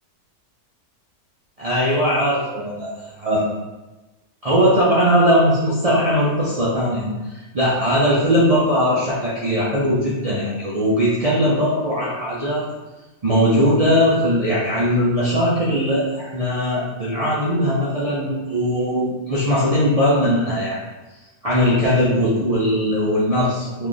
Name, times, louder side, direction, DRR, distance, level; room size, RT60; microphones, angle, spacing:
voice 1, 1.6-3.4 4.4-7.1 7.5-12.6 13.2-20.8 21.4-23.9, equal, 60° right, -8 dB, 0.3 m, -19 dB
3.0 x 2.4 x 3.9 m, 1.1 s
omnidirectional pair, 1.6 m